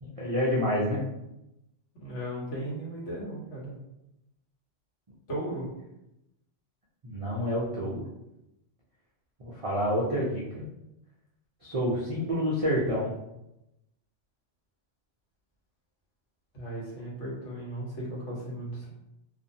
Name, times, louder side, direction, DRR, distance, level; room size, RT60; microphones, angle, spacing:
voice 1, 0.0-1.0 7.0-8.0 9.5-10.6 11.6-13.1, equal, 55° right, -5 dB, 0.3 m, -28 dB
voice 2, 2.0-3.8 5.3-5.7 16.5-18.9, right 1 dB, 75° left, -7 dB, 1.4 m, -36 dB
2.6 x 2.5 x 2.7 m, 0.90 s
omnidirectional pair, 1.2 m